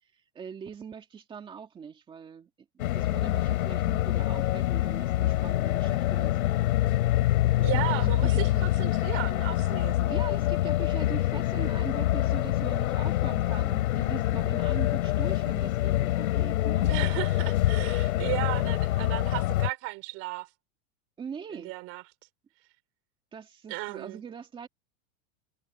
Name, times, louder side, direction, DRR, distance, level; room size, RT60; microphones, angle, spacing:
voice 1, 0.3-2.5 2.9-6.4 7.6-8.7 10.1-16.9 21.2-21.7 23.3-24.7, right 6 dB, 10° right, 2.2 m, -41 dB
sound 1, 2.8-19.7, left 15 dB, 75° left, 2.6 m, -26 dB
voice 2, 7.6-10.2 16.9-20.5 21.5-22.0 23.7-24.2, right 22 dB, 30° right, 4.7 m, -35 dB
supercardioid pair, 175°, 43 cm